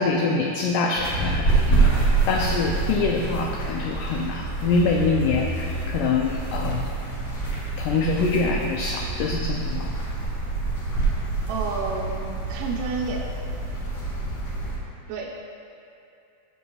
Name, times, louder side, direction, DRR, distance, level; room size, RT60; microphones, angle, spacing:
voice 1, 0.0-6.9 7.8-10.0, left 3 dB, 80° left, 0 dB, 2.0 m, -25 dB
sound 1, 1.0-14.8, right 3 dB, 55° left, 2.7 m, -26 dB
voice 2, 11.5-13.3 15.1-15.3, right 4 dB, 75° right, -4 dB, 2.3 m, -30 dB
17.0 x 6.8 x 2.3 m, 2.7 s
omnidirectional pair, 4.1 m